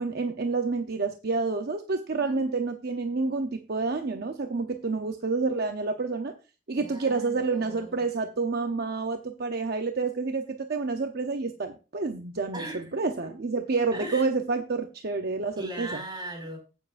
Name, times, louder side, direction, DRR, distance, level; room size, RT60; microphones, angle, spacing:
voice 1, 0.0-6.3 6.7-15.9, right 4 dB, 50° right, 0.7 m, -29 dB
voice 2, 2.1-2.4 6.7-8.0 12.5-13.0 13.9-14.3 15.6-16.6, right 1 dB, 20° right, 5.2 m, -39 dB
16.0 x 7.2 x 2.5 m
head